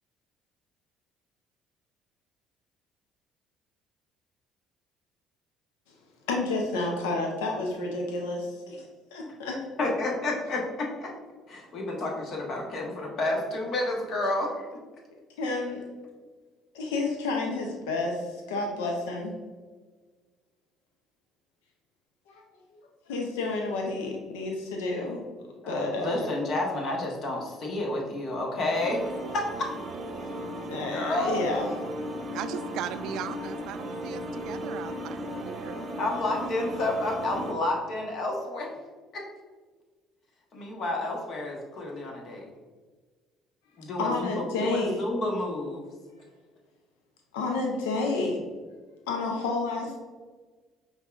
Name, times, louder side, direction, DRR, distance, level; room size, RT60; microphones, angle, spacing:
voice 1, 6.3-8.9 9.1-9.6 15.4-15.8 16.7-19.3 22.3-22.4 23.1-25.2 25.7-26.4 30.6-31.7 44.0-45.0 47.3-48.4 49.1-50.0, left 3 dB, 85° left, 1 dB, 0.6 m, -30 dB
voice 2, 9.8-11.1 11.5-14.6 25.6-29.7 30.7-31.8 36.0-38.7 39.1-39.2 40.5-42.5 43.8-45.8, left 2 dB, 60° left, -1 dB, 1.2 m, -30 dB
sound 1, 28.8-37.5, right 1 dB, 40° right, 0.7 m, -36 dB
voice 3, 32.3-35.9, right 9 dB, 70° right, 11 dB, 0.3 m, -38 dB
5.3 x 3.6 x 2.4 m, 1.4 s
hypercardioid pair, 60°, 0 cm